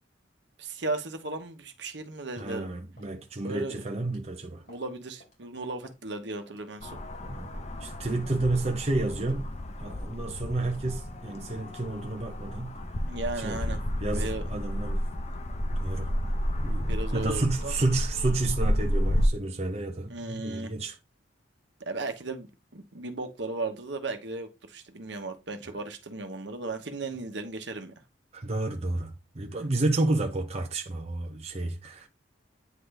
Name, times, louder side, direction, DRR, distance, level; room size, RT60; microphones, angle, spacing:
voice 1, 0.6-2.7 3.4-3.8 4.7-7.0 13.1-13.8 14.1-14.5 16.9-17.7 20.1-20.7 21.8-22.5 22.7-27.9, right 3 dB, 65° right, 1.1 m, -36 dB
sound 1, 2.4-2.6 3.0-3.2 3.5-3.7 4.1-4.2 4.7-4.9 5.2-5.4 5.8-6.1 6.5-6.6 7.1-7.3 7.8-8.0 8.5-8.7 9.2-9.4 9.9-10.1 10.6-10.9, left 1 dB, 50° left, 4.0 m, -56 dB
voice 2, 2.4-4.6 7.2-7.5 7.8-9.5 9.8-12.8 13.4-15.0 15.8-16.1 16.6-21.0 28.3-32.1, right 2 dB, 35° right, 0.7 m, -31 dB
sound 2, 6.8-19.3, equal, 35° left, 0.7 m, -31 dB
9.2 x 3.9 x 3.3 m
head